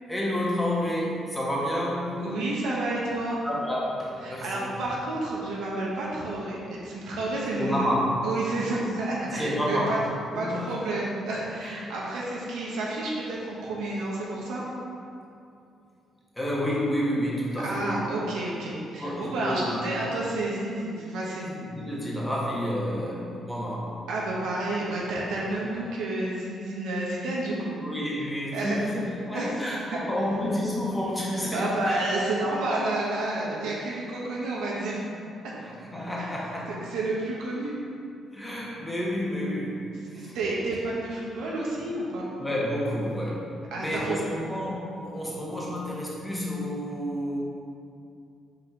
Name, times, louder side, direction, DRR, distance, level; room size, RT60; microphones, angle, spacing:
voice 1, 0.1-2.3 3.4-4.8 7.5-8.1 9.3-10.7 11.6-11.7 16.3-18.1 19.0-19.8 21.6-24.0 27.8-32.0 33.5-33.7 35.6-36.7 38.3-40.4 42.4-47.4, equal, 10° left, -5 dB, 1.5 m, -30 dB
voice 2, 2.2-3.4 4.2-7.9 8.2-10.0 10.3-14.6 17.6-21.5 24.1-27.8 28.5-28.8 29.3-29.6 29.9-30.0 31.5-35.0 36.2-36.3 36.9-37.8 40.1-42.3 43.7-44.2, right 2 dB, 85° right, -5 dB, 1.2 m, -30 dB
5.8 x 3.9 x 4.6 m, 2.6 s
cardioid pair, 90°, 0 cm